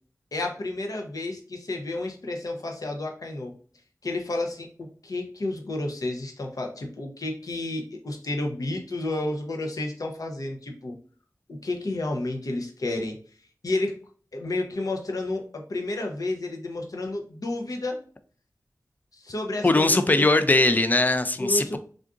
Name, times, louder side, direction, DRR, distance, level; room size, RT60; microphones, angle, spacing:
voice 1, 0.3-3.5 4.0-11.0 11.5-13.2 13.6-14.0 14.3-18.0 19.1-20.3 21.4-21.8, left 2 dB, 65° left, 2 dB, 0.6 m, -31 dB
voice 2, 19.6-21.8, left 2 dB, 25° left, 10 dB, 0.3 m, -20 dB
3.6 x 2.5 x 2.4 m, 0.43 s
wide cardioid pair, 65°, 7 cm